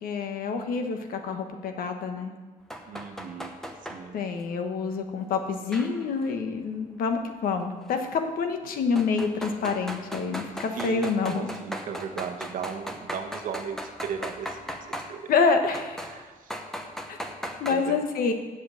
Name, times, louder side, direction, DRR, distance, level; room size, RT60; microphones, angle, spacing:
voice 1, 0.0-2.3 4.1-11.5 15.3-16.1 17.1-17.2 17.6-18.3, left 5 dB, 80° left, 5 dB, 1.2 m, -27 dB
sound 1, 2.7-4.0 5.7-6.3 7.9-8.0 9.0-15.1 15.7-16.2 16.5-17.8, equal, 5° left, 0.8 m, -37 dB
voice 2, 2.9-3.6 3.9-4.2 10.5-15.3 16.0-16.5 17.7-18.0, right 7 dB, 65° right, 5 dB, 1.1 m, -37 dB
7.7 x 7.1 x 8.3 m, 1.3 s
cardioid pair, 160°, 15 cm